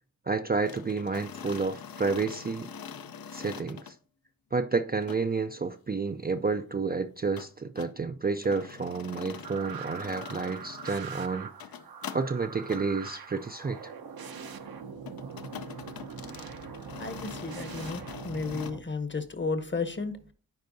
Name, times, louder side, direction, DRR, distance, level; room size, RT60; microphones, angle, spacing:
voice 1, 0.3-2.7 3.3-3.9 4.5-11.5 12.1-13.9, right 4 dB, 25° right, 0.4 m, -30 dB
sound 1, 0.7-3.9 5.0-5.2 7.4-7.9 8.4-11.0 11.5-12.2 12.6-12.8 15.1-18.7, left 7 dB, 70° left, 0.6 m, -44 dB
sound 2, 9.4-18.8, right 6 dB, 70° right, 0.8 m, -42 dB
voice 2, 17.0-20.3, left 4 dB, 30° left, 0.9 m, -33 dB
9.5 x 4.5 x 2.6 m
wide cardioid pair, 80°, 37 cm